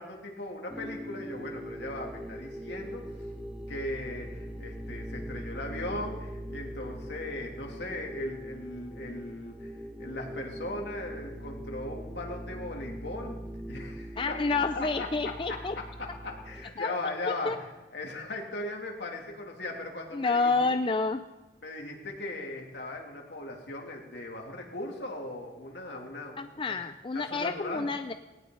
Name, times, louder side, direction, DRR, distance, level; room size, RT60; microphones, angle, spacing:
voice 1, 0.0-3.3 3.7-13.4 13.7-14.4 14.7-17.7 17.9-20.7 21.6-26.8 27.1-27.9, left 2 dB, 75° left, 0 dB, 2.8 m, -38 dB
sound 1, 0.7-16.6, equal, 5° right, 1.1 m, -41 dB
voice 2, 14.2-15.8 16.8-16.9 17.3-17.6 20.1-21.2 26.4-28.1, left 3 dB, 30° left, 9 dB, 0.4 m, -29 dB
19.0 x 18.0 x 3.9 m, 1.1 s
head